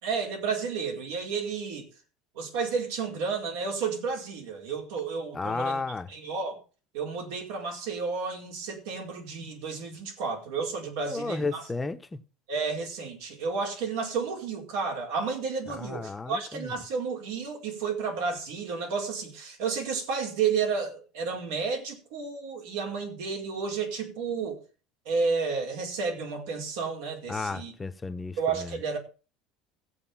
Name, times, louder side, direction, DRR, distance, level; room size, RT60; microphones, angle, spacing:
voice 1, 0.0-1.9 2.3-5.8 6.1-6.6 6.9-11.7 12.5-24.6 25.0-27.7 28.4-29.0, right 5 dB, 90° right, 4.7 m, -31 dB
voice 2, 5.3-6.1 11.1-12.0 15.7-16.7 27.3-28.8, left 3 dB, 10° left, 0.8 m, -33 dB
15.0 x 8.2 x 5.6 m
cardioid pair, 150°, 0 cm